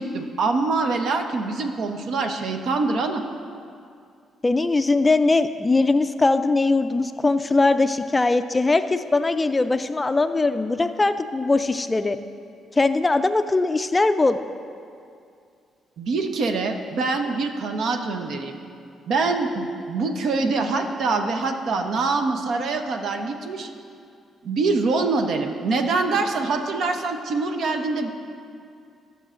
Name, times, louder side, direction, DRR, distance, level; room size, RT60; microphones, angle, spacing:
voice 1, 0.0-3.2 16.0-18.6 19.1-23.7 24.4-28.1, right 3 dB, 70° right, 5 dB, 0.7 m, -24 dB
voice 2, 4.4-12.2 12.7-14.4, left 3 dB, 20° left, 10 dB, 0.3 m, -21 dB
16.5 x 6.8 x 2.5 m, 2.4 s
cardioid pair, 90°, 0 cm